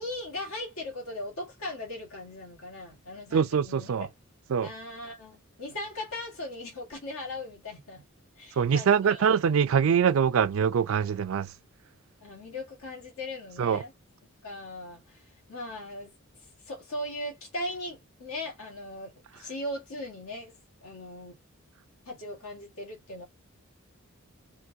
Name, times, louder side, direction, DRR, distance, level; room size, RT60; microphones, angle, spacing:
voice 1, 0.0-4.1 4.6-8.0 8.4-9.3 12.2-13.9 14.4-15.2 15.5-16.1 16.6-21.4 22.0-23.2, left 1 dB, 85° left, 1.7 m, -38 dB
voice 2, 3.3-4.1 4.5-4.7 8.6-11.5 13.6-13.8, right 7 dB, 75° right, 0.4 m, -24 dB
3.6 x 2.2 x 2.7 m
head